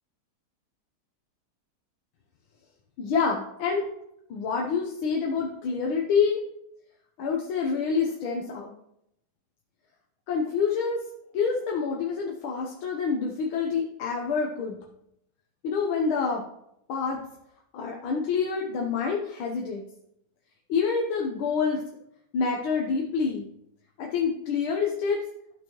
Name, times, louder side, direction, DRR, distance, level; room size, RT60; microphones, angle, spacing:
voice 1, 3.0-3.9 4.3-6.4 7.2-8.7 10.3-11.0 11.3-14.8 15.6-16.4 16.9-17.2 17.7-19.8 20.7-21.8 22.3-23.5 24.0-25.2, left 5 dB, 75° left, 0 dB, 1.7 m, -27 dB
12.5 x 6.4 x 3.0 m, 0.78 s
omnidirectional pair, 2.3 m